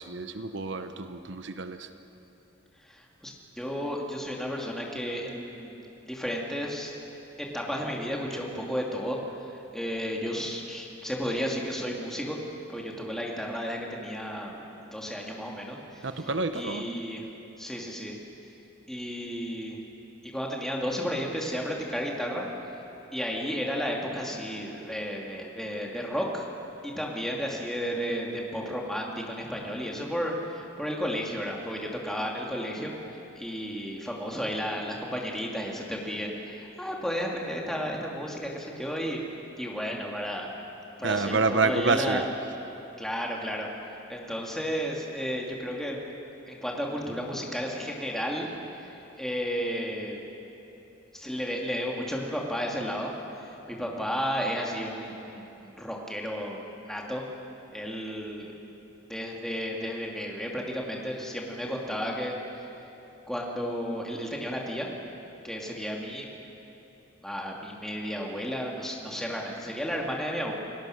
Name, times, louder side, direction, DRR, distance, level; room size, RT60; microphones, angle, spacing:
voice 1, 0.0-1.9 16.0-16.8 41.0-42.2, right 3 dB, 65° right, 9 dB, 0.9 m, -28 dB
voice 2, 2.8-5.8 6.1-6.9 7.4-9.2 9.4-12.4 12.7-14.7 14.9-16.3 16.5-17.2 17.6-18.1 18.9-19.8 20.2-22.4 23.1-26.4 26.8-39.2 39.6-40.5 41.0-42.2 43.0-46.0 46.5-48.5 48.8-50.2 51.1-53.1 53.4-57.2 57.7-58.5 59.0-62.3 63.3-64.9 65.4-66.3 67.2-70.5, equal, ahead, -2 dB, 2.4 m, -33 dB
29.0 x 18.0 x 6.5 m, 3.0 s
head